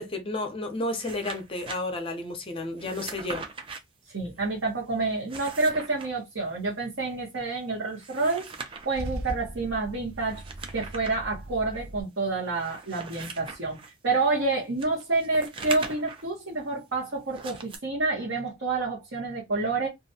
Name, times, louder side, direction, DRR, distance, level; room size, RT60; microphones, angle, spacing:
voice 1, 0.0-3.5, left 2 dB, 25° left, 0.5 m, -32 dB
sound 1, 0.8-1.8 2.8-3.8 5.1-6.1 7.9-9.0 10.2-11.2 11.7-11.8 12.5-13.9 14.8-16.3 17.3-17.8, right 4 dB, 25° right, 0.3 m, -40 dB
voice 2, 4.1-10.4 10.7-13.8 14.0-19.9, right 3 dB, 65° right, 0.9 m, -28 dB
Car / Engine starting / Idling, 8.5-12.0, right 1 dB, 85° right, 0.6 m, -39 dB
2.4 x 2.1 x 2.7 m
head